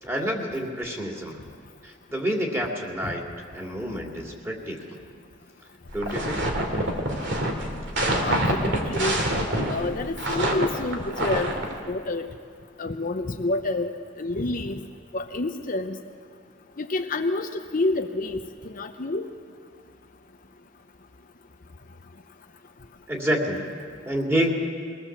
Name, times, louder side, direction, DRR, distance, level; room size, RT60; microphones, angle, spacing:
voice 1, 0.0-1.4 1.8-3.3 3.5-4.8 5.9-6.4 23.1-23.7 24.1-24.5, equal, 10° right, 0 dB, 2.5 m, -28 dB
sound 1, 5.9-11.7, right 1 dB, 60° right, 2.6 m, -26 dB
voice 2, 8.2-9.2 9.7-11.5 11.9-12.3 12.8-14.8 15.1-16.0 16.8-19.3, left 2 dB, 45° left, 5 dB, 0.8 m, -28 dB
22.5 x 18.0 x 7.3 m, 2.2 s
head